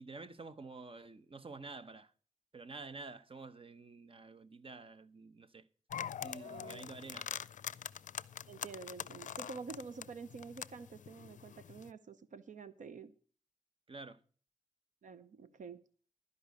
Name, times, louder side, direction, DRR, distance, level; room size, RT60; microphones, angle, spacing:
voice 1, 0.0-2.1 2.5-5.7 6.2-7.3 13.9-14.2, right 3 dB, 45° right, 0.9 m, -49 dB
sound 1, 5.9-11.9, left 9 dB, 80° left, 0.4 m, -44 dB
voice 2, 6.4-6.9 8.5-13.1 15.0-15.8, right 4 dB, 85° right, 0.8 m, -48 dB
12.5 x 5.4 x 8.3 m
cardioid pair, 55°, 13 cm